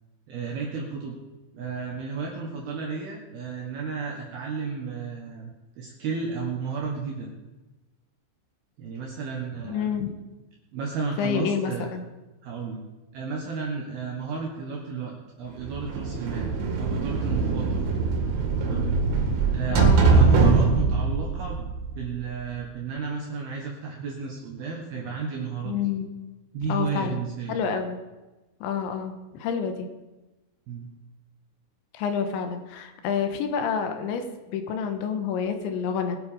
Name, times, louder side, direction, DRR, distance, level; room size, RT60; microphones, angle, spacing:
voice 1, 0.3-1.2 1.5-5.5 5.8-7.3 8.8-9.9 10.7-11.9 12.4-12.8 13.1-17.8 18.6-18.9 19.5-25.8 26.5-27.6 30.7-30.9, right 5 dB, 65° right, -1 dB, 2.8 m, -33 dB
voice 2, 9.7-10.2 11.2-12.0 19.7-20.0 25.6-26.1 26.7-27.2 27.5-28.0 28.6-29.9 31.9-36.2, left 7 dB, 75° left, 6 dB, 3.2 m, -28 dB
sound 1, 15.6-22.4, right 4 dB, 80° right, 4.6 m, -22 dB
21.5 x 8.1 x 5.1 m, 1.1 s
omnidirectional pair, 5.9 m